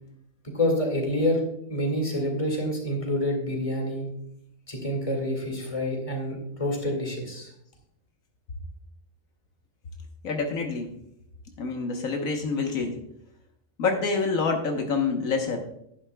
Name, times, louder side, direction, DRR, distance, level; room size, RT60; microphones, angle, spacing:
voice 1, 0.4-1.4 1.7-4.1 4.7-7.5, left 1 dB, 25° left, 1 dB, 2.2 m, -27 dB
voice 2, 10.2-10.9 11.6-13.0 13.8-15.6, left 4 dB, 85° left, 3 dB, 1.5 m, -27 dB
11.5 x 11.0 x 2.3 m, 0.75 s
omnidirectional pair, 1.4 m